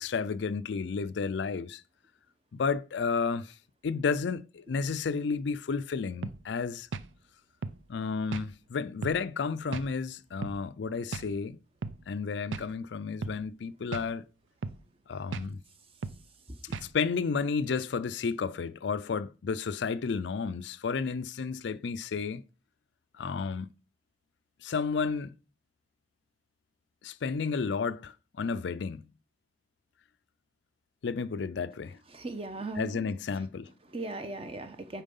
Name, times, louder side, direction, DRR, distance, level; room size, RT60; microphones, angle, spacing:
voice 1, 0.0-1.8 2.5-3.5 3.8-6.9 7.9-11.6 12.1-14.2 15.1-15.6 16.8-22.4 23.2-23.7 24.6-25.4 27.0-29.1 31.0-32.0 32.8-33.7, left 5 dB, 70° left, 0.4 m, -32 dB
sound 1, 6.2-6.4 6.9-7.1 7.6-7.8 8.3-8.5 9.0-9.2 9.7-9.9 10.4-10.6 11.1-11.3 11.8-12.0 12.5-12.7 13.2-13.4 13.9-14.1 14.6-14.8 15.3-15.5 16.0-16.2 16.7-16.9, right 4 dB, 90° right, 0.5 m, -36 dB
voice 2, 32.1-33.1 33.9-35.0, right 2 dB, 30° right, 1.0 m, -38 dB
9.0 x 4.5 x 5.4 m
head